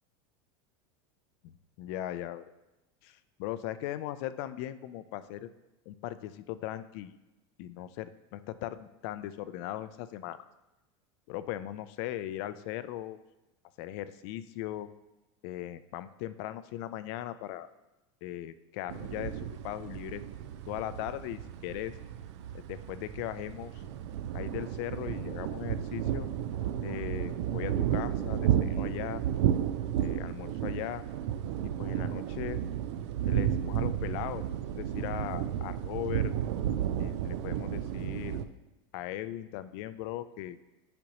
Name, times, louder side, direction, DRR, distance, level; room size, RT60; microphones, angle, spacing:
voice 1, 1.4-2.5 3.0-5.5 5.9-7.1 7.6-10.4 11.3-13.2 13.8-14.9 15.4-17.7 18.2-20.2 20.7-21.9 22.5-23.8 24.3-26.3 26.8-29.2 30.0-31.0 31.8-32.6 33.3-34.5 34.8-36.3 37.0-38.5 38.9-40.6, left 13 dB, 60° left, 13 dB, 0.4 m, -38 dB
sound 1, 18.9-38.5, right 10 dB, 75° right, 0.5 m, -32 dB
8.7 x 5.2 x 3.0 m, 1.0 s
supercardioid pair, 120°, 15 cm